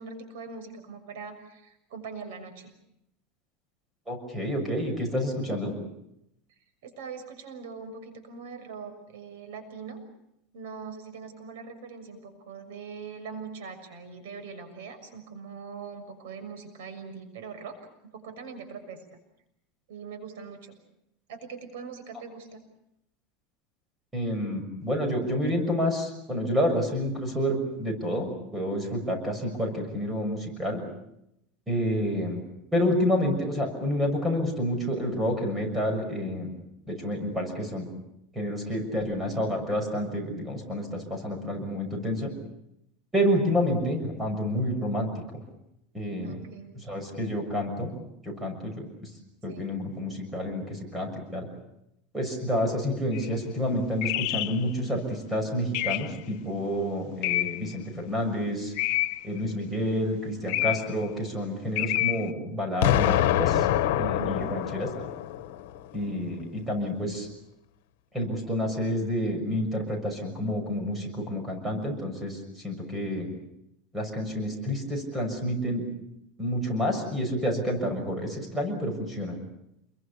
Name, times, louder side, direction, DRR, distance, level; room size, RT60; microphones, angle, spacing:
voice 1, 0.0-2.7 6.5-10.0 10.5-17.8 18.1-19.0 19.9-20.8 21.3-22.6 46.2-46.7 49.5-49.7 63.9-64.5, right 5 dB, 80° right, 9 dB, 6.4 m, -42 dB
voice 2, 4.1-5.7 24.1-30.8 31.7-32.4 32.7-36.5 36.9-37.9 38.3-42.3 43.1-45.1 45.9-46.4 46.8-47.9 48.2-49.1 49.4-51.5 52.1-58.7 59.2-63.7 64.0-65.1 65.9-67.3 68.1-73.3 73.9-75.8 76.4-79.4, equal, 10° right, 4 dB, 6.5 m, -29 dB
sound 1, 53.1-53.3 54.0-54.6 55.7-56.2 57.2-57.8 58.8-59.4 60.5-61.0 61.8-62.3, left 17 dB, 55° left, 1.1 m, -28 dB
Explosion, 62.8-65.8, left 11 dB, 75° left, 1.4 m, -25 dB
29.0 x 22.5 x 7.0 m, 0.81 s
supercardioid pair, 165°, 0 cm